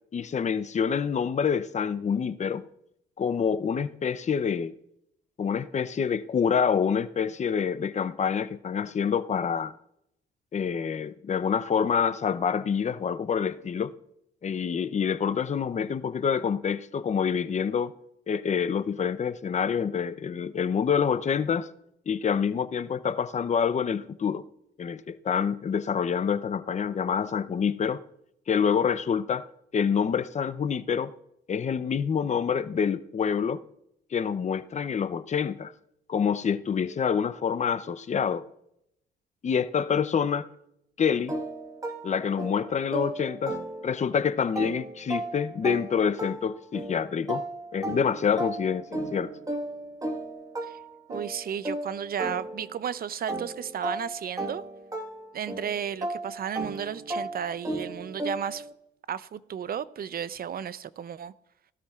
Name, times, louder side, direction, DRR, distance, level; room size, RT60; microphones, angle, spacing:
voice 1, 0.1-2.6 3.2-4.7 5.4-9.7 10.5-13.9 14.4-17.9 18.3-21.7 22.1-24.4 24.8-28.0 28.5-29.5 29.7-31.1 31.5-33.6 34.1-35.7 36.1-38.5 39.4-40.5 41.0-41.3 42.0-43.6 43.8-47.4 47.7-49.3, left 7 dB, 35° left, 0.6 m, -27 dB
sound 1, 41.3-44.2 44.6-52.9 53.3-58.7, right 1 dB, 15° right, 1.5 m, -35 dB
voice 2, 51.1-54.6 55.3-58.7 59.1-61.3, right 8 dB, 50° right, 0.6 m, -33 dB
18.5 x 13.0 x 2.4 m
cardioid pair, 90°, 20 cm